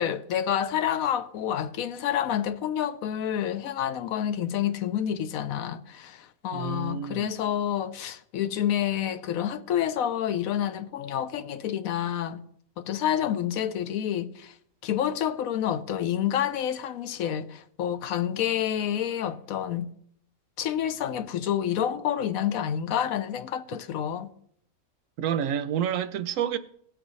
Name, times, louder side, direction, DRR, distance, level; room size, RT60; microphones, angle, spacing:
voice 1, 0.0-12.4 12.8-14.5 14.8-19.9 20.6-24.3, left 10 dB, 75° left, 1.0 m, -28 dB
voice 2, 6.5-7.4 25.2-26.6, right 9 dB, 70° right, 0.9 m, -29 dB
18.0 x 8.0 x 3.1 m
omnidirectional pair, 1.5 m